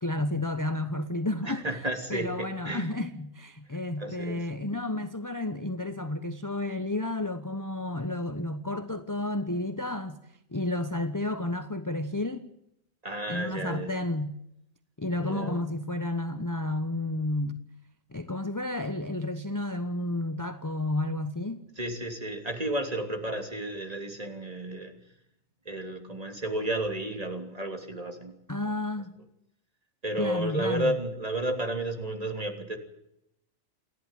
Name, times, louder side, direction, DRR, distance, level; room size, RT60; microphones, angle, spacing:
voice 1, 0.0-1.6 2.1-10.2 10.5-12.5 13.3-14.4 15.0-17.6 18.1-21.7 28.5-29.2 30.2-30.9, left 1 dB, 15° left, 1.0 m, -31 dB
voice 2, 1.4-2.9 4.0-4.5 13.0-14.1 15.1-15.7 21.8-24.9 25.6-28.4 28.6-28.7 30.0-32.8, right 1 dB, 30° right, 3.1 m, -32 dB
28.5 x 11.5 x 9.1 m
omnidirectional pair, 1.3 m